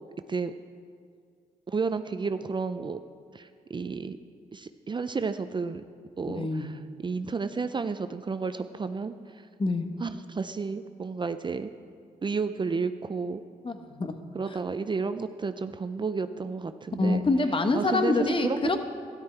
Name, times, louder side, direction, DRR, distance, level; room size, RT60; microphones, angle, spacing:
voice 1, 1.7-3.0 3.3-4.2 4.5-5.8 6.2-9.1 10.0-11.7 12.2-13.4 14.3-17.2 17.7-18.8, right 4 dB, 30° right, 10 dB, 0.5 m, -31 dB
voice 2, 6.3-6.7 9.6-9.9 13.6-14.1 17.0-18.8, left 3 dB, 35° left, 7 dB, 1.1 m, -26 dB
13.0 x 11.0 x 4.5 m, 2.2 s
cardioid pair, 65°, 15 cm